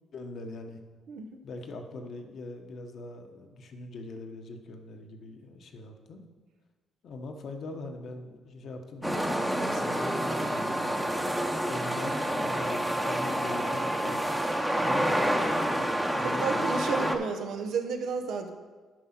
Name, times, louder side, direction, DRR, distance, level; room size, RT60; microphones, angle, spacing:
voice 1, 0.1-0.8 1.4-6.2 7.0-11.2 11.6-14.3 14.8-15.4 15.8-16.7, left 2 dB, 60° left, 4 dB, 1.1 m, -42 dB
sound 1, 9.0-17.2, right 1 dB, 5° right, 0.9 m, -28 dB
voice 2, 16.0-18.5, right 5 dB, 80° right, 5 dB, 1.0 m, -32 dB
9.1 x 5.4 x 5.9 m, 1.4 s
cardioid pair, 90°, 0 cm